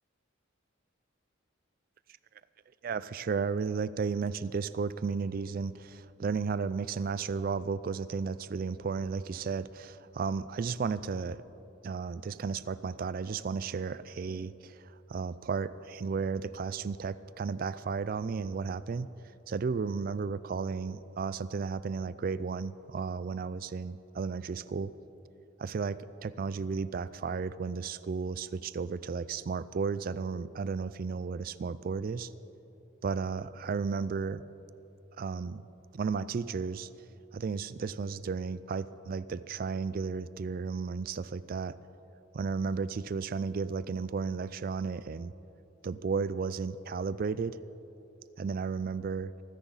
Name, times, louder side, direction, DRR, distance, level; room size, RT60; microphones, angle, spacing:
voice 1, 2.8-11.4 11.8-19.1 19.5-24.9 25.6-32.3 33.0-34.4 35.2-35.7 35.9-36.9 37.3-41.8 42.3-45.3 45.8-47.6 48.4-49.3, right 5 dB, 45° right, 16 dB, 0.3 m, -34 dB
26.0 x 10.0 x 4.0 m, 3.0 s
head